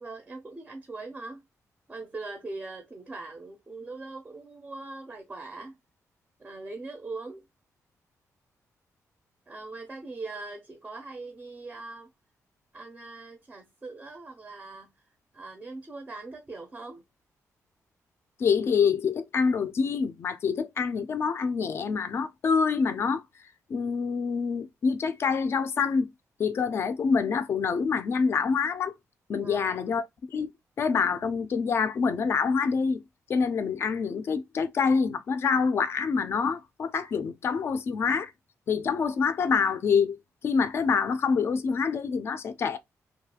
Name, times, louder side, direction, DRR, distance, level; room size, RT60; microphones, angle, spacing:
voice 1, 0.0-1.4 1.9-5.8 6.4-7.4 9.5-12.1 12.7-14.9 15.3-17.0 29.4-29.7, right 3 dB, 20° right, 0.4 m, -41 dB
voice 2, 18.4-23.2 23.7-26.1 26.4-28.9 29.3-30.0 30.3-30.5 30.8-33.0 33.3-38.3 38.7-40.2 40.4-42.8, left 5 dB, 45° left, 0.3 m, -26 dB
2.4 x 2.3 x 2.7 m
wide cardioid pair, 160°, 6 cm